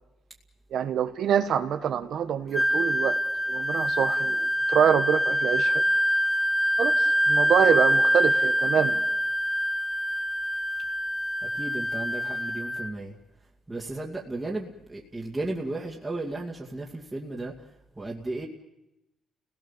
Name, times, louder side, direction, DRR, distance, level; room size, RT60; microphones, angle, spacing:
voice 1, 0.7-3.2 3.5-5.8 6.8-9.0, right 8 dB, 70° right, 9 dB, 1.4 m, -25 dB
Wind instrument woodwind instrument, 2.5-12.9, equal, 5° left, 0.7 m, -25 dB
voice 2, 11.5-13.1 13.7-17.5 18.0-18.5, right 2 dB, 15° right, -2 dB, 2.4 m, -34 dB
30.0 x 18.0 x 7.4 m, 0.93 s
cardioid pair, 90°, 0 cm